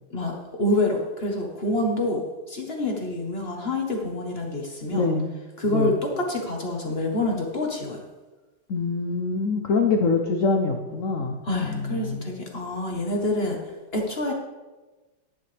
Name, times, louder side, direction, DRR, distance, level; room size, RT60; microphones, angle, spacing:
voice 1, 0.1-5.1 5.6-8.0 11.4-13.6 13.9-14.3, left 1 dB, 35° left, 1 dB, 1.0 m, -27 dB
voice 2, 4.9-5.3 5.6-5.9 8.7-12.3, left 4 dB, 80° left, 3 dB, 0.7 m, -25 dB
11.0 x 10.0 x 3.3 m, 1.2 s
omnidirectional pair, 2.4 m